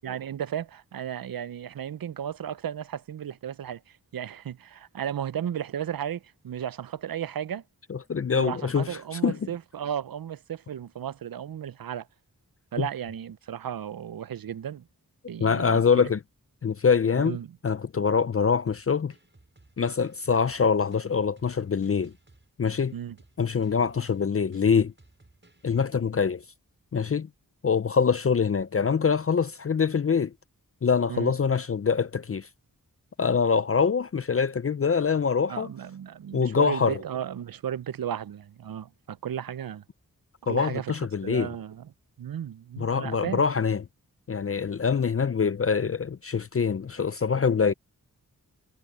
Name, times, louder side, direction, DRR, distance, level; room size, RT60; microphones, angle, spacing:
voice 1, 0.0-7.6 8.3-12.1 12.7-14.9 15.3-15.8 17.2-17.5 22.9-23.2 31.1-31.3 35.5-39.8 40.4-41.9 42.2-43.4, right 9 dB, 80° right, 0.6 m, -34 dB
voice 2, 7.9-9.4 12.8-12.9 15.4-16.2 16.6-17.4 17.6-19.1 19.8-22.1 22.6-22.9 23.4-24.9 25.6-26.4 26.9-27.3 27.6-30.3 30.8-32.5 33.2-35.7 36.3-37.0 40.5-41.5 42.8-43.8 44.3-47.7, left 6 dB, 40° left, 0.5 m, -24 dB
sound 1, 18.7-25.9, right 2 dB, 35° right, 5.4 m, -58 dB
wide cardioid pair, 65°, 34 cm